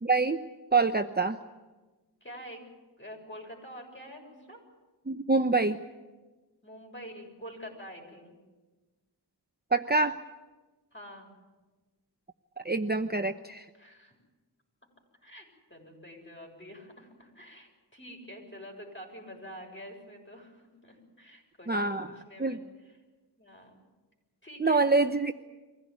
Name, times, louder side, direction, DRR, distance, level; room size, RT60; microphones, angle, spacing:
voice 1, 0.0-0.4 0.7-1.4 5.1-5.8 9.7-10.2 12.6-13.7 21.7-22.1 22.4-22.6 24.6-25.3, right 3 dB, 25° right, 7 dB, 0.8 m, -26 dB
voice 2, 2.2-2.6 3.0-4.6 6.6-8.4 10.9-11.3 13.8-14.1 15.2-22.7 23.4-23.8 24.4-24.9, equal, 30° left, 1 dB, 7.0 m, -47 dB
24.0 x 16.0 x 9.6 m, 1.2 s
wide cardioid pair, 55°, 41 cm